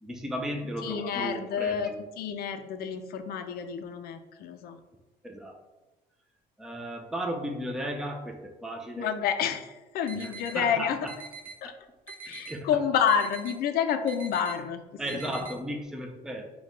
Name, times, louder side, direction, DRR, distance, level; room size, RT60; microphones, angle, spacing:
voice 1, 0.0-2.0 5.2-5.6 6.6-9.1 10.1-11.1 11.6-11.7 12.5-12.7 15.0-16.5, right 1 dB, 5° right, 2 dB, 0.4 m, -35 dB
voice 2, 0.8-1.9 2.2-4.8 9.0-11.0 11.6-11.7 12.2-14.8 15.4-15.5, left 8 dB, 65° left, 8 dB, 0.4 m, -29 dB
sound 1, 10.1-10.6 11.1-11.6 12.1-12.6 13.1-13.6 14.1-14.5 15.1-15.5, right 5 dB, 55° right, 0.7 m, -43 dB
4.4 x 2.3 x 3.6 m, 1.1 s
cardioid pair, 110°, 17 cm